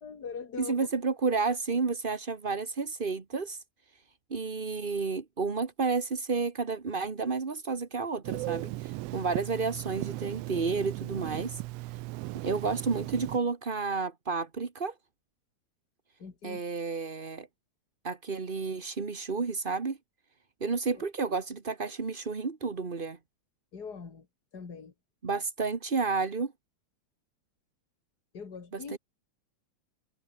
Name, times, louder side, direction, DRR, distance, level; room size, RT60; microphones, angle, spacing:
voice 1, 0.0-0.9 16.2-16.6 20.9-21.0 23.7-24.3 24.5-24.9 28.3-29.0, left 5 dB, 35° left, 3.2 m, -41 dB
voice 2, 0.6-3.6 4.3-11.6 12.4-14.9 16.4-17.5 18.0-20.0 20.6-23.2 25.2-26.5 28.7-29.0, right 4 dB, 35° right, 0.8 m, -31 dB
Telephone, 8.2-13.4, right 20 dB, 85° right, 1.4 m, -37 dB
omnidirectional pair, 3.3 m